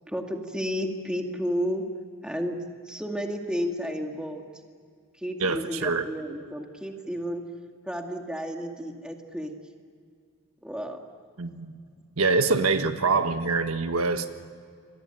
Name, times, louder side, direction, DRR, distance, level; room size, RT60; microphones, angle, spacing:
voice 1, 0.1-1.8 2.2-2.6 2.9-4.4 5.2-7.4 7.8-9.5 10.6-11.0, equal, 5° right, 2 dB, 2.2 m, -32 dB
voice 2, 5.4-6.0 11.4-11.7 12.2-14.3, right 4 dB, 80° right, 8 dB, 1.5 m, -25 dB
28.0 x 23.5 x 9.1 m, 2.2 s
head